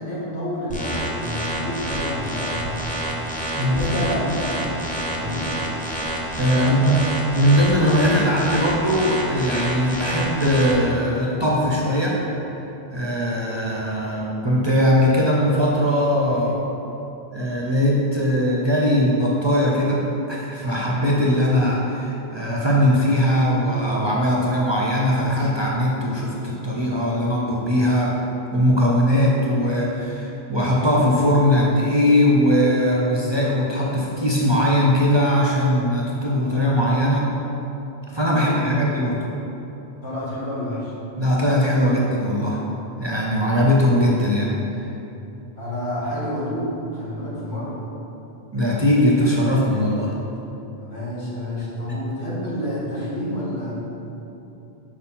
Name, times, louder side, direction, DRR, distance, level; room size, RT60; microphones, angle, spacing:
voice 1, 0.0-2.7 3.6-4.7 5.1-5.5 6.6-7.0 38.4-38.8 40.0-40.9 45.6-47.8 50.8-53.7, equal, 80° left, -9 dB, 2.0 m, -29 dB
sound 1, 0.7-10.7, right 1 dB, 10° left, 0.6 m, -28 dB
voice 2, 3.5-4.0 6.4-7.0 7.3-12.2 12.9-16.6 17.3-28.2 28.5-37.3 38.1-39.2 41.2-42.6 43.0-44.6 48.5-50.1, equal, 35° right, -3 dB, 0.5 m, -20 dB
4.8 x 4.4 x 5.6 m, 3.0 s
omnidirectional pair, 1.1 m